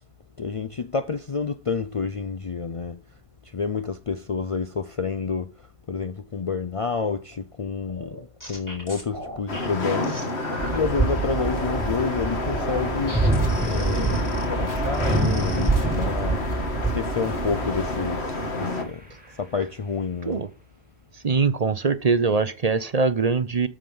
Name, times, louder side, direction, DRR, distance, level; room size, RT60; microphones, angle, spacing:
voice 1, 0.4-3.0 3.5-5.5 5.9-8.2 8.5-13.2 13.6-16.4 16.9-19.1 19.4-20.4, left 5 dB, 45° left, 0.5 m, -29 dB
sound 1, 7.9-10.8 11.2-11.9 12.3-16.5 16.9-17.5 17.9-18.3, equal, 15° left, 3.9 m, -39 dB
sound 2, 9.5-18.8, left 2 dB, 75° left, 2.0 m, -29 dB
sound 3, 10.6-18.8, right 3 dB, 10° right, 1.9 m, -26 dB
voice 2, 21.2-23.7, right 4 dB, 40° right, 0.7 m, -22 dB
13.0 x 5.0 x 5.4 m
omnidirectional pair, 1.1 m